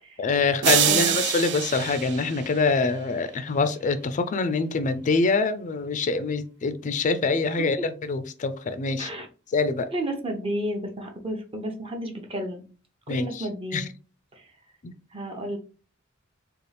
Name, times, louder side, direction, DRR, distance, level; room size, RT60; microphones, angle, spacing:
voice 1, 0.2-9.1 9.5-9.9 13.1-13.4 13.7-13.8 14.8-14.9, left 4 dB, 35° left, 11 dB, 0.4 m, -25 dB
sound 1, 0.6-3.0, right 10 dB, 55° right, 0.4 m, -25 dB
voice 2, 0.9-1.2 7.6-7.9 9.0-9.3 9.9-12.6 13.1-13.9 14.3-14.5 15.1-15.6, right 1 dB, 25° right, 3 dB, 0.7 m, -32 dB
4.1 x 2.3 x 3.3 m, 0.36 s
head